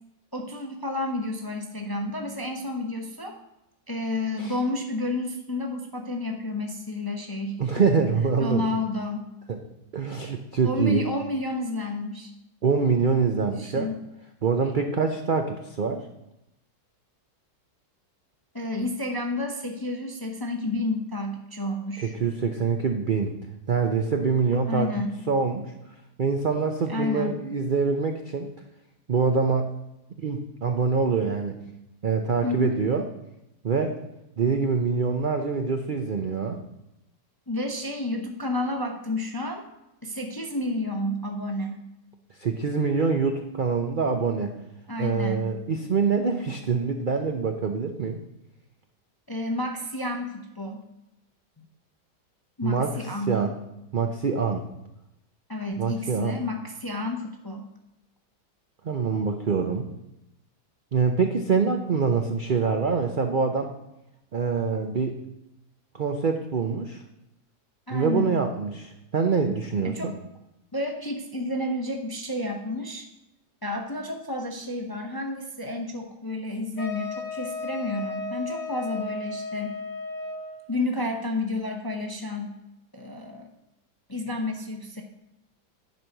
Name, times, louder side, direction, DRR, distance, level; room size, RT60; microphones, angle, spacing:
voice 1, 0.3-3.3 3.9-7.6 8.4-9.3 10.6-12.3 13.4-13.9 18.5-22.2 24.7-25.1 26.9-27.4 32.4-32.8 37.5-39.6 40.0-41.9 44.9-45.5 49.3-50.8 51.6-51.7 52.6-53.5 55.5-57.7 67.9-68.3 69.8-70.2 70.7-73.1 73.6-79.7 80.7-82.6 82.9-83.5 84.1-85.0, left 2 dB, 25° left, 3 dB, 0.5 m, -30 dB
voice 2, 7.6-8.7 9.5-9.6 9.9-11.0 12.6-13.9 14.4-16.0 22.0-23.3 23.7-24.9 25.3-25.7 26.2-28.5 29.1-29.7 30.2-31.5 32.0-33.0 33.6-34.0 34.4-36.6 42.4-44.5 45.0-48.2 52.6-52.9 53.3-53.5 53.9-54.6 55.8-56.4 58.8-59.9 60.9-63.7 64.3-65.2 65.9-67.0 67.9-70.1, right 5 dB, 65° right, 5 dB, 0.4 m, -25 dB
Wind instrument woodwind instrument, 76.8-80.6, left 3 dB, 85° left, 2.9 m, -34 dB
10.5 x 4.6 x 6.5 m, 0.90 s
omnidirectional pair, 1.8 m